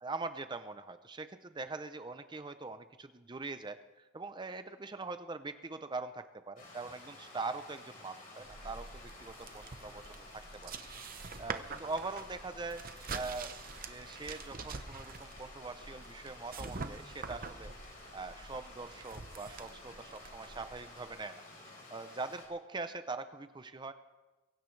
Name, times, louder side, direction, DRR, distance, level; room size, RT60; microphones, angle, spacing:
voice 1, 0.0-11.1 11.4-12.8 13.1-13.6 13.8-17.7 18.1-21.4 21.9-23.9, right 3 dB, 20° right, 10 dB, 0.5 m, -42 dB
Stream, 6.6-22.5, left 2 dB, 45° left, 4.5 m, -53 dB
sound 1, 8.4-21.1, right 4 dB, 45° right, 0.9 m, -46 dB
23.0 x 16.5 x 3.3 m, 1.2 s
head